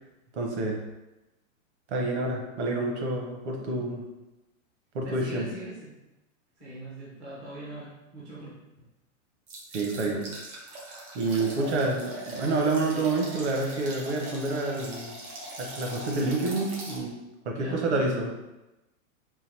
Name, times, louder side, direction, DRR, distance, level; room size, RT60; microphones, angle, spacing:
voice 1, 0.3-0.8 1.9-4.0 4.9-5.5 9.7-10.3 11.1-15.1 15.6-17.1 17.4-18.3, right 2 dB, 55° right, 1 dB, 1.0 m, -28 dB
voice 2, 5.0-5.9 6.6-8.5 17.5-18.0, right 1 dB, 10° right, -8 dB, 0.4 m, -41 dB
sound 1, 9.5-17.0, right 1 dB, 80° right, 1.5 m, -41 dB
3.8 x 2.7 x 3.2 m, 0.99 s
hypercardioid pair, 155°, 42 cm